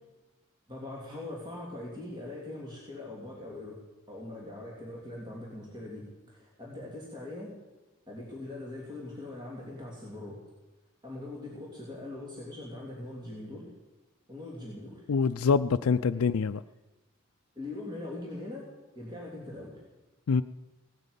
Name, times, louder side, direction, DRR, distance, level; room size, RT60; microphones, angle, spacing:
voice 1, 0.7-3.8 4.1-7.5 8.1-10.4 11.0-13.7 14.3-15.1 17.5-18.7 18.9-19.8, left 2 dB, 20° right, -4 dB, 3.1 m, -41 dB
voice 2, 15.1-16.6 20.3-20.4, left 5 dB, 90° left, 11 dB, 0.4 m, -25 dB
17.5 x 9.2 x 8.3 m, 1.1 s
head